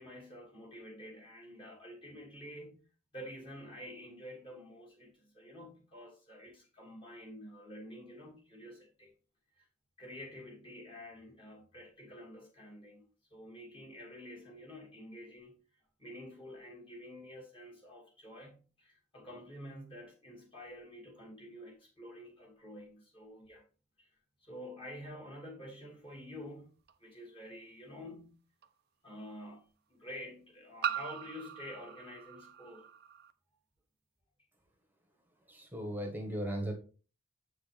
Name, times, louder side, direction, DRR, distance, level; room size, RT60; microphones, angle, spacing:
voice 1, 0.0-2.8 3.1-9.1 9.6-9.7 10.0-13.0 13.3-15.6 16.0-23.6 24.0-24.1 24.4-26.7 27.0-28.4 29.0-29.6 29.9-32.9, left 1 dB, 25° left, 2.6 m, -49 dB
sound 1, 26.9-27.0 28.6-28.7 30.8-33.3, right 9 dB, 45° right, 0.6 m, -40 dB
voice 2, 35.5-36.7, right 1 dB, 10° right, 1.4 m, -37 dB
8.2 x 6.2 x 3.5 m
head